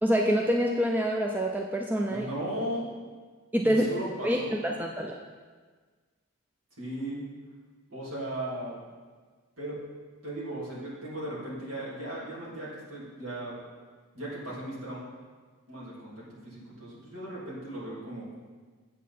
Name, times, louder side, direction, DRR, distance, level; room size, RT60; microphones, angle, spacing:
voice 1, 0.0-2.3 3.5-3.9 4.2-5.1, equal, 10° right, 1 dB, 0.4 m, -26 dB
voice 2, 2.1-2.9 3.6-4.6 6.8-7.2 7.9-8.8 9.6-9.8 10.2-13.6 14.1-15.0 15.7-18.3, right 1 dB, 65° right, -7 dB, 2.9 m, -37 dB
8.2 x 7.3 x 4.3 m, 1.5 s
head